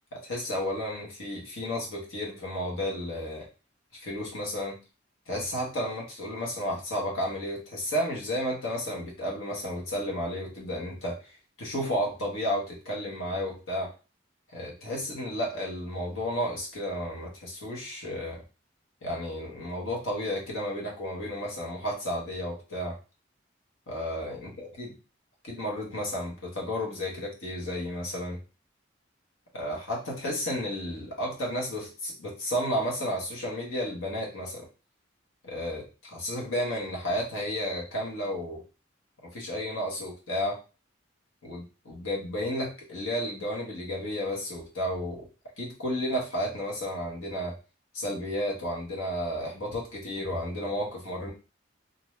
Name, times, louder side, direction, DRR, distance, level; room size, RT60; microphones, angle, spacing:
voice 1, 0.1-3.5 4.0-4.8 5.3-11.3 11.6-13.9 14.5-18.4 19.0-23.0 23.9-24.9 25.4-28.4 29.5-34.7 35.4-38.6 39.2-40.6 41.4-45.3 45.6-47.5 47.9-51.3, equal, 90° left, -3 dB, 0.9 m, -32 dB
2.6 x 2.2 x 3.1 m, 0.31 s
head